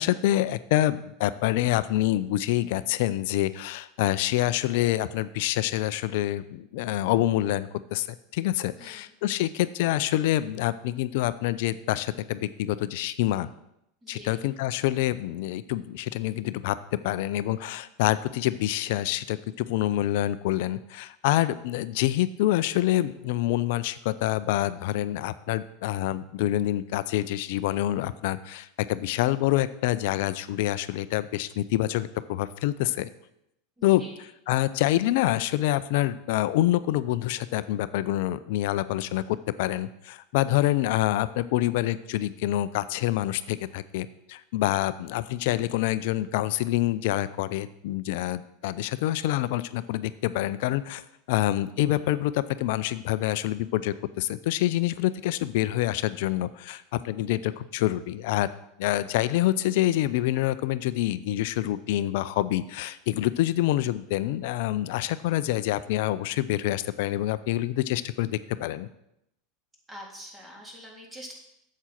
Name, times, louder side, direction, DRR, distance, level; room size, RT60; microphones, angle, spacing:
voice 1, 0.0-13.5 14.1-33.1 33.8-34.0 34.5-51.0 51.3-58.5 58.8-68.9, left 14 dB, 60° left, 15 dB, 0.5 m, -26 dB
voice 2, 8.7-9.1 14.0-14.4 33.8-34.2 69.9-71.3, equal, 15° right, -2 dB, 3.5 m, -45 dB
8.1 x 7.6 x 5.9 m, 0.79 s
hypercardioid pair, 85°, 0 cm